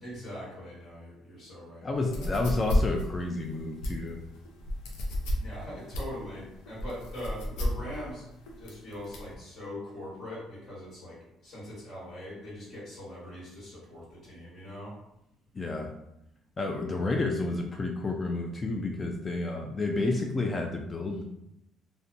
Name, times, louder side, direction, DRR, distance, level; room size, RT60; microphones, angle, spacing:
voice 1, 0.0-2.4 5.4-8.2 8.6-14.9, left 1 dB, 55° left, -10 dB, 1.3 m, -42 dB
voice 2, 1.8-4.2 15.5-15.9 16.6-21.2, left 2 dB, 30° left, 2 dB, 0.3 m, -30 dB
sound 1, 2.0-9.4, left 1 dB, 85° left, 0.4 m, -32 dB
2.5 x 2.1 x 2.6 m, 0.82 s
supercardioid pair, 80°, 0 cm